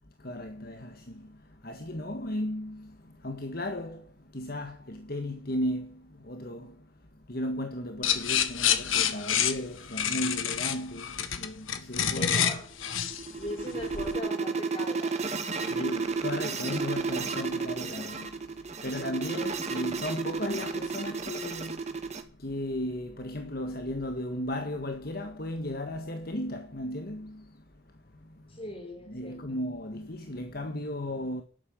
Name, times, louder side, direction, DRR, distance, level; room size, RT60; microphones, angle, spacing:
voice 1, 0.2-12.5 13.2-13.8 15.7-28.6 29.1-31.4, left 1 dB, 45° left, 1.7 m, -36 dB
sound 1, 8.0-14.2, left 9 dB, 75° left, 1.5 m, -28 dB
voice 2, 12.1-12.7 13.3-15.9 17.6-17.7 28.5-29.6, left 1 dB, 25° left, 4.4 m, -40 dB
sound 2, 12.8-22.2, right 4 dB, 35° right, 1.8 m, -32 dB
12.5 x 9.8 x 8.6 m
head